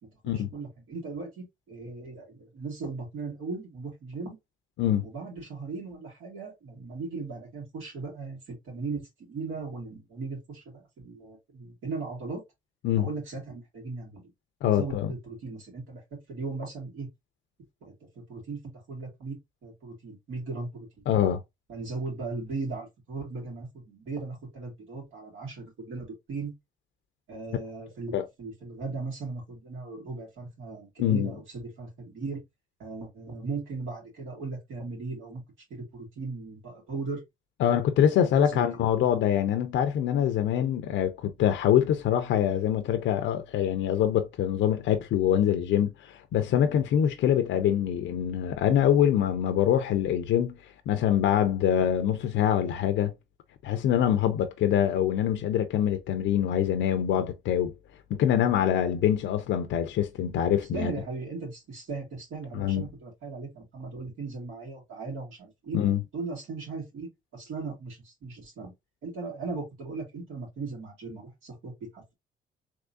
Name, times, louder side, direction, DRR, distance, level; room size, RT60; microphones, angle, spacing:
voice 1, 0.3-4.4 5.0-12.4 13.0-14.2 14.6-17.1 17.8-18.6 18.9-21.1 21.7-26.5 27.3-32.4 32.8-35.4 35.7-37.2 38.3-38.8 45.3-45.4 45.8-45.9 60.7-65.8 66.1-68.7 69.0-72.1, right 3 dB, 80° right, 2.2 m, -38 dB
voice 2, 14.6-15.1 21.1-21.4 28.1-28.3 31.0-31.3 37.6-50.6 50.9-53.1 53.6-57.7 58.1-60.9 62.5-62.8 65.7-66.0, left 10 dB, 75° left, 0.6 m, -24 dB
3.6 x 3.0 x 2.6 m
cardioid pair, 90°, 20 cm